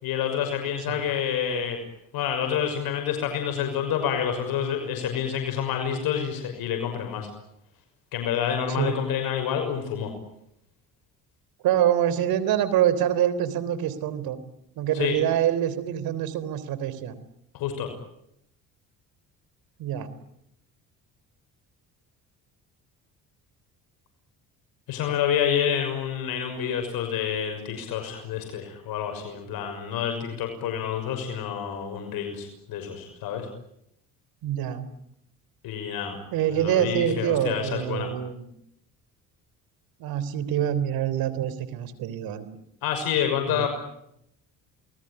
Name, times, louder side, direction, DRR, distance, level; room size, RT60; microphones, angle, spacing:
voice 1, 0.0-1.8 2.1-7.3 8.1-10.1 14.9-15.2 17.5-17.9 24.9-33.5 35.6-36.2 36.5-38.1 42.8-43.7, left 8 dB, 75° left, 5 dB, 6.2 m, -28 dB
voice 2, 8.7-9.0 11.6-14.4 14.8-17.1 19.8-20.1 34.4-34.9 36.3-38.5 40.0-42.5 43.5-43.7, right 10 dB, 75° right, 14 dB, 3.7 m, -25 dB
28.5 x 20.5 x 10.0 m, 0.79 s
cardioid pair, 100°, 36 cm